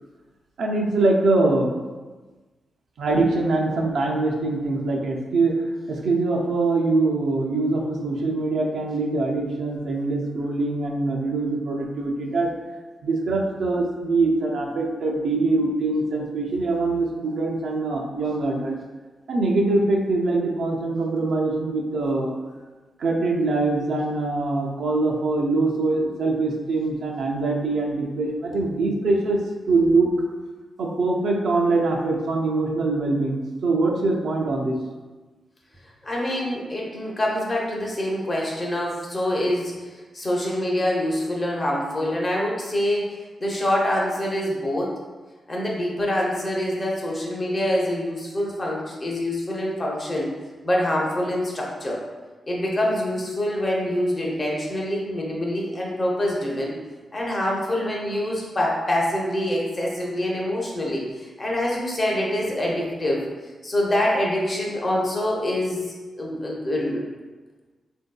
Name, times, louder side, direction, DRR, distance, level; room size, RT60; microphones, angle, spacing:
voice 1, 0.6-1.7 3.0-5.5 5.9-12.5 13.0-18.8 19.3-22.3 23.0-30.1 30.8-34.8, right 3 dB, 80° right, -1 dB, 0.4 m, -23 dB
voice 2, 36.0-39.7 40.1-44.9 45.5-50.3 50.6-52.0 52.5-56.7 57.1-63.3 63.6-65.8 66.2-67.0, left 1 dB, 25° left, -3 dB, 0.6 m, -25 dB
3.7 x 2.6 x 2.2 m, 1.3 s
wide cardioid pair, 140°, 0 cm